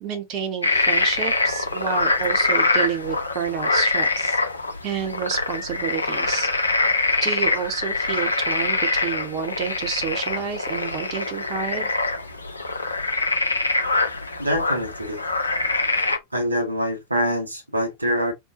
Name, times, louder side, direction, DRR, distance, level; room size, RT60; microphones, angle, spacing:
voice 1, 0.0-4.4 4.8-6.5 7.2-11.9, right 8 dB, 40° right, 0.9 m, -29 dB
sound 1, 0.6-16.2, left 3 dB, 80° left, 0.6 m, -24 dB
voice 2, 14.4-15.2 16.3-18.3, equal, 85° right, 1.0 m, -24 dB
2.9 x 2.2 x 3.6 m
figure-of-eight pair, 90°, 0 cm